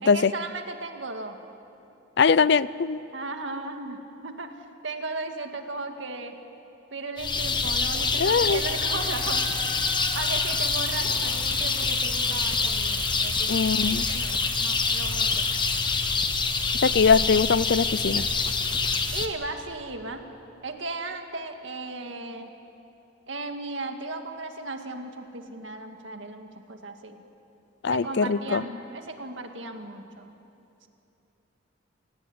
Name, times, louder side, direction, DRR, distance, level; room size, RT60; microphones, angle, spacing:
voice 1, 0.0-1.4 3.1-4.0 4.2-6.4 6.9-9.5 10.1-15.5 19.1-20.2 20.6-22.5 23.3-27.2 27.9-30.3, right 3 dB, 70° right, 5 dB, 2.0 m, -36 dB
voice 2, 2.2-3.0 8.2-8.6 13.5-14.0 16.7-18.3 27.8-28.6, left 5 dB, 60° left, 18 dB, 0.5 m, -21 dB
sound 1, 7.2-19.3, left 4 dB, 25° left, 1.2 m, -26 dB
Bicycle, 9.1-15.8, right 3 dB, 10° right, 1.9 m, -40 dB
29.0 x 17.5 x 8.7 m, 2.9 s
head